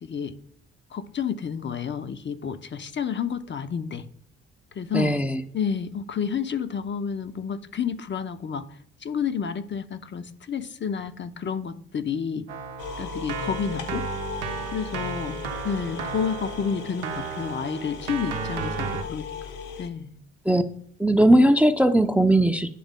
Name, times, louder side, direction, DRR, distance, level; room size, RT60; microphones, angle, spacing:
voice 1, 0.0-0.3 0.9-4.1 4.7-5.2 5.5-8.6 9.0-12.5 13.0-14.1 14.7-15.4 15.6-20.2, left 7 dB, 35° left, 10 dB, 0.6 m, -30 dB
voice 2, 4.9-5.4 20.4-20.6 21.0-22.7, right 1 dB, 5° right, 8 dB, 0.5 m, -18 dB
Keyboard (musical), 12.5-19.0, right 6 dB, 85° right, 0.6 m, -34 dB
sound 1, 12.8-19.9, left 5 dB, 60° left, 1.0 m, -37 dB
10.0 x 3.5 x 3.6 m, 0.65 s
hypercardioid pair, 45°, 34 cm